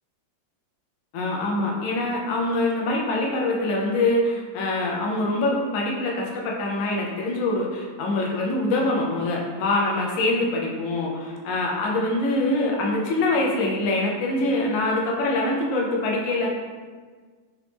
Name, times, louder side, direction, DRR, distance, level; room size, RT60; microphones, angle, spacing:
voice 1, 1.1-16.5, left 2 dB, 60° left, -2 dB, 0.9 m, -24 dB
4.0 x 3.0 x 3.3 m, 1.5 s
omnidirectional pair, 2.1 m